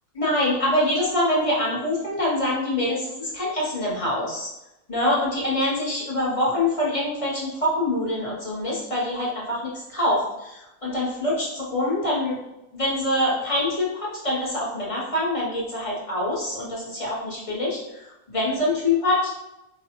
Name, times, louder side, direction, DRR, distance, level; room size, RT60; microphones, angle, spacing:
voice 1, 0.1-4.5 4.9-12.4 12.7-19.4, left 1 dB, 25° left, -5 dB, 1.0 m, -25 dB
4.7 x 2.4 x 2.9 m, 0.92 s
omnidirectional pair, 1.5 m